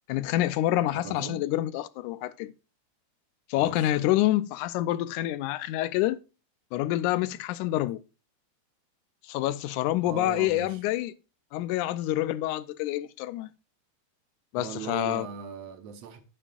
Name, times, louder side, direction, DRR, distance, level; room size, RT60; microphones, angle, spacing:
voice 1, 0.1-2.5 3.5-6.2 6.7-8.0 9.2-11.1 11.5-13.5 14.5-15.3, left 15 dB, 85° left, 2.1 m, -27 dB
voice 2, 0.9-1.5 3.6-3.9 10.1-10.8 14.6-16.2, right 7 dB, 65° right, 2.0 m, -39 dB
9.9 x 9.8 x 2.4 m
omnidirectional pair, 3.4 m